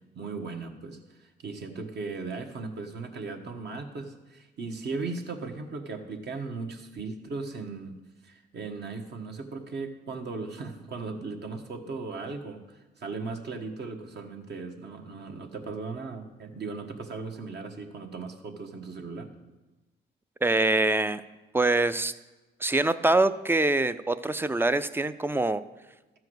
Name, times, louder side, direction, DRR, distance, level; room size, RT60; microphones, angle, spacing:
voice 1, 0.1-8.0 8.2-19.3, right 4 dB, 60° right, 4 dB, 1.4 m, -37 dB
voice 2, 20.4-21.2 21.5-22.1 22.6-25.6, right 2 dB, 10° right, 13 dB, 0.4 m, -24 dB
12.5 x 4.8 x 7.9 m, 1.1 s
cardioid pair, 90°, 20 cm